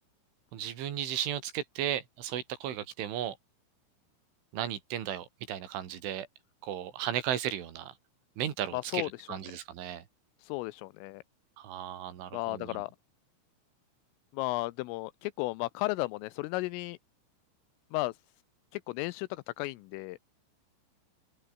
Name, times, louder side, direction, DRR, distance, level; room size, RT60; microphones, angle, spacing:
voice 1, 0.5-3.4 4.5-6.3 6.6-8.0 8.4-10.1 11.6-12.8, right 10 dB, 70° right, 5.3 m, -35 dB
voice 2, 8.7-9.4 10.4-11.2 12.3-12.9 14.3-17.0 17.9-18.2 18.7-20.2, left 21 dB, 85° left, 3.3 m, -34 dB
open air
omnidirectional pair, 5.9 m